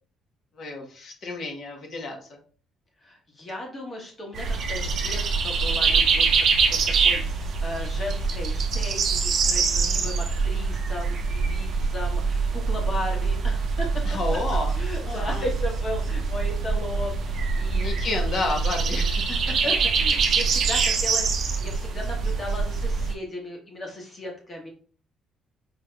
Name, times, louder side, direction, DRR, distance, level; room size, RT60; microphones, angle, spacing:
voice 1, 0.5-2.4 9.7-10.2 11.7-11.9 14.0-14.7 15.1-15.4 17.7-19.4, left 2 dB, 45° left, 2 dB, 1.0 m, -31 dB
voice 2, 3.0-6.3 6.7-14.0 14.3-14.4 14.8-18.0 19.5-24.7, left 1 dB, 25° left, -1 dB, 1.3 m, -36 dB
sound 1, 4.3-23.1, right 4 dB, 45° right, 0.5 m, -24 dB
5.1 x 3.3 x 2.3 m, 0.41 s
cardioid pair, 180°, 0 cm